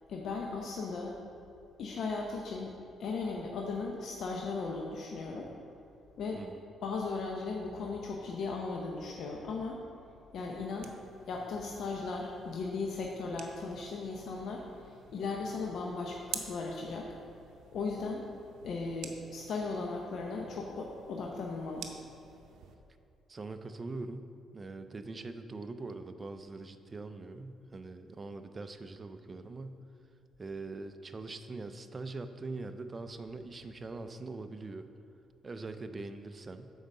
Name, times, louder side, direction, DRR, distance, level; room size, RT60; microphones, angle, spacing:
voice 1, 0.1-1.2 1.8-2.7 3.0-5.5 6.2-6.4 6.8-9.8 10.3-10.9 11.3-17.1 17.7-18.3 18.6-21.9, left 4 dB, 70° left, 0 dB, 0.7 m, -37 dB
sound 1, 10.4-22.8, right 7 dB, 85° right, 0.6 m, -50 dB
voice 2, 23.3-29.8 30.4-34.9 35.4-36.7, right 3 dB, 30° right, 8 dB, 0.5 m, -42 dB
6.4 x 4.8 x 6.5 m, 2.6 s
cardioid pair, 90°, 0 cm